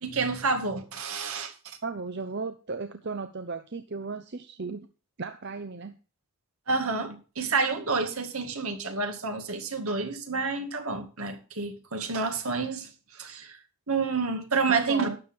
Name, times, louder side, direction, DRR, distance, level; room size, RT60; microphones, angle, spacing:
voice 1, 0.0-1.8 6.7-13.6 13.9-15.1, right 4 dB, 75° right, 2.1 m, -29 dB
voice 2, 1.8-4.9 5.2-5.9 14.7-15.2, right 4 dB, 50° right, 0.8 m, -35 dB
12.5 x 8.9 x 3.6 m
head